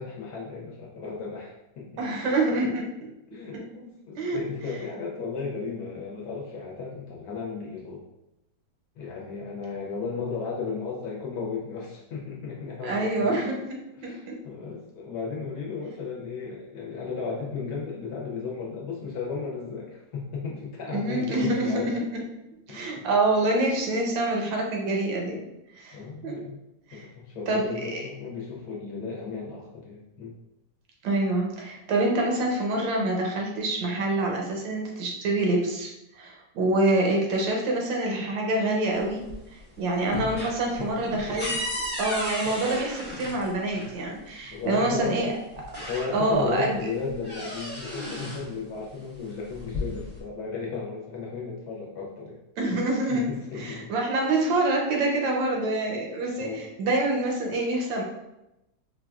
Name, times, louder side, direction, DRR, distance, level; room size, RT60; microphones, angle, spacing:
voice 1, 0.0-2.0 3.3-8.0 9.0-13.4 14.0-21.9 22.7-23.1 25.9-26.6 26.9-30.3 36.6-36.7 40.4-41.2 41.5-41.6 42.4-42.7 44.4-45.2 45.8-52.4 53.1-53.9 56.4-56.7, left 4 dB, 65° left, -3 dB, 1.1 m, -35 dB
voice 2, 2.0-2.9 3.5-3.6 4.1-4.4 12.8-13.8 14.0-14.4 20.9-22.2 22.7-25.4 25.7-26.0 26.2-26.4 26.9-27.1 27.5-28.1 31.0-39.2 39.5-41.5 42.0-45.3 46.1-46.8 52.6-53.3 53.5-58.0, right 2 dB, 85° right, 0 dB, 1.4 m, -26 dB
sound 1, 39.0-39.6 39.9-43.9 45.0-45.1 45.5-46.5 46.8-48.5 49.4-50.2, left 1 dB, 15° left, 0.4 m, -34 dB
4.5 x 2.3 x 2.3 m, 0.90 s
omnidirectional pair, 1.9 m